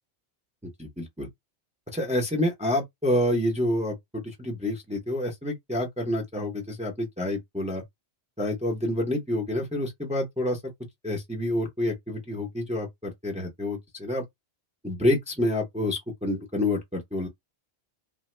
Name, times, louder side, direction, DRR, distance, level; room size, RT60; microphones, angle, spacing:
voice 1, 0.8-1.3 1.9-7.8 8.4-10.6 11.0-14.2 14.8-17.3, left 1 dB, 10° right, 0.5 m, -28 dB
2.9 x 2.1 x 3.1 m
omnidirectional pair, 1.1 m